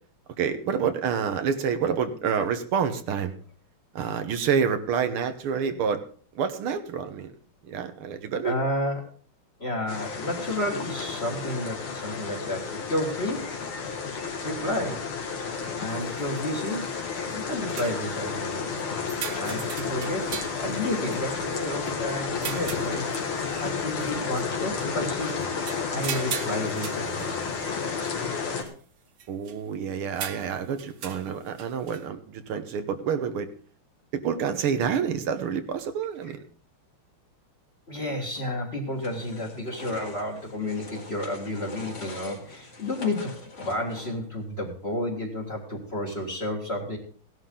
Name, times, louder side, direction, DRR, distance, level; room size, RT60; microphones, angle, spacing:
voice 1, 0.4-3.3 3.9-6.0 6.4-7.3 7.6-8.6 29.3-33.5 34.1-36.4, right 7 dB, 85° right, 8 dB, 2.0 m, -28 dB
voice 2, 8.4-9.1 9.6-13.6 14.4-15.0 15.8-16.9 17.3-18.6 19.3-25.4 25.9-27.4 36.2-36.3 37.9-47.0, left 1 dB, 30° left, 1 dB, 2.0 m, -31 dB
sound 1, 9.9-28.6, left 5 dB, 75° left, 2.7 m, -32 dB
sound 2, 15.9-16.5 17.3-17.4 17.7-18.1 18.5-22.0 22.4-23.6 24.0-24.4 24.8-27.6 28.1-28.2 28.6-28.7 29.2-29.6 30.2-32.1, right 8 dB, 55° right, 1.1 m, -39 dB
sound 3, 39.0-44.4, left 2 dB, 50° left, 2.9 m, -43 dB
16.5 x 11.5 x 3.8 m, 0.43 s
omnidirectional pair, 2.3 m